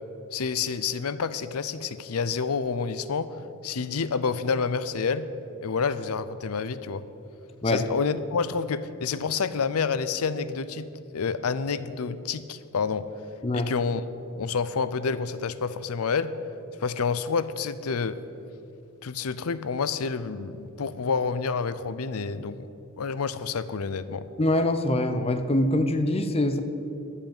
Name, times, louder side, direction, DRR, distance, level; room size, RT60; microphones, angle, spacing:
voice 1, 0.3-3.4 3.6-5.3 5.6-7.0 7.6-13.1 13.5-14.0 14.4-16.3 16.8-18.2 19.0-22.7 23.0-24.3, left 5 dB, 80° left, 14 dB, 0.6 m, -28 dB
voice 2, 24.4-26.6, left 1 dB, 25° left, 8 dB, 0.7 m, -24 dB
13.0 x 5.8 x 8.9 m, 2.8 s
head